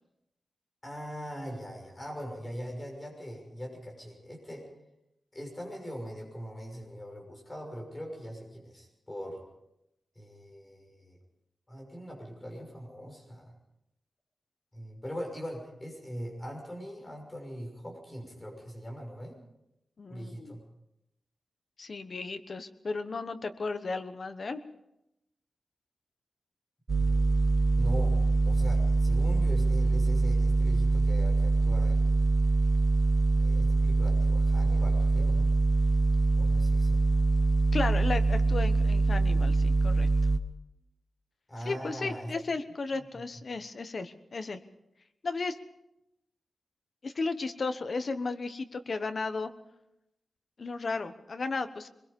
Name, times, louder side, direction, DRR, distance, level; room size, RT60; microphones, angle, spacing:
voice 1, 0.8-4.7 5.3-9.4 10.1-11.2 11.7-13.5 14.7-19.3 20.1-20.6 27.0-27.4 27.7-28.2 28.4-32.3 33.4-35.5 36.4-37.0 41.5-42.3 42.9-43.0, equal, 15° left, 0 dB, 6.2 m, -41 dB
voice 2, 20.0-20.6 21.8-24.6 37.7-40.1 41.6-44.6 45.2-45.6 47.0-49.5 50.6-51.9, left 3 dB, 45° left, 9 dB, 1.1 m, -34 dB
sound 1, 26.9-40.4, right 3 dB, 35° right, 1.1 m, -24 dB
24.0 x 22.0 x 5.3 m, 0.87 s
wide cardioid pair, 180°, 0 cm